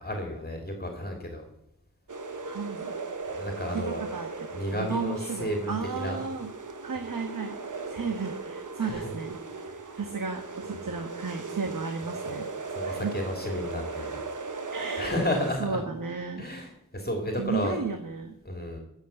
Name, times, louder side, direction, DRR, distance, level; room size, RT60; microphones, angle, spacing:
voice 1, 0.0-1.4 3.3-4.0 4.5-6.2 8.8-9.1 9.9-10.0 12.7-14.1 15.0-15.8 16.4-17.8 18.4-18.8, left 1 dB, 30° left, 2 dB, 2.6 m, -32 dB
sound 1, 2.1-15.5, right 4 dB, 70° right, 1.2 m, -37 dB
voice 2, 2.4-2.9 3.7-4.3 4.7-6.5 6.8-7.5 7.9-9.4 9.6-12.4 12.8-13.1 14.7-15.1 15.6-16.5 17.4-18.3, right 5 dB, 90° right, 4 dB, 1.3 m, -33 dB
16.0 x 6.5 x 8.1 m, 0.81 s
wide cardioid pair, 75°, 32 cm